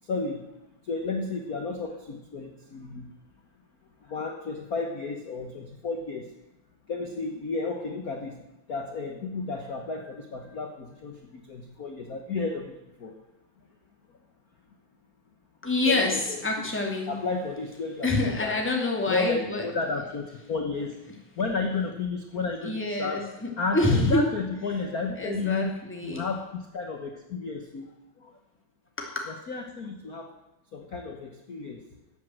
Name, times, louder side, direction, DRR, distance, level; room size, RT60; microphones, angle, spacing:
voice 1, 0.0-3.1 4.0-6.3 6.9-13.2 14.1-14.2 15.8-16.4 17.1-18.6 19.1-21.0 21.3-25.8 26.0-27.9 28.2-28.3 29.3-30.4 30.7-31.9, left 4 dB, 60° left, 3 dB, 0.9 m, -33 dB
voice 2, 15.6-17.2 18.0-19.7 22.6-24.3 25.2-26.2 29.0-29.2, left 2 dB, 5° left, 0 dB, 2.0 m, -26 dB
13.5 x 8.4 x 7.8 m, 0.89 s
omnidirectional pair, 3.4 m